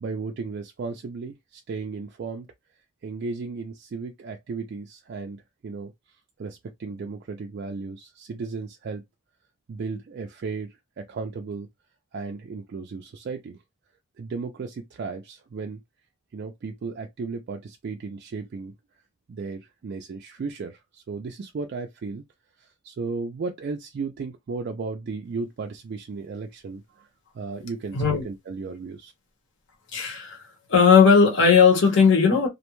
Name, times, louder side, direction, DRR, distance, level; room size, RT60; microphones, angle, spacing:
voice 1, 0.0-2.5 3.0-9.0 9.7-11.7 12.1-13.6 14.2-15.8 16.3-18.7 19.3-22.2 22.6-27.1 27.3-29.1, right 4 dB, 50° right, 0.3 m, -35 dB
voice 2, 27.6-28.2 29.9-30.4 30.7-32.5, left 5 dB, 60° left, 1.0 m, -17 dB
2.4 x 2.2 x 2.9 m
head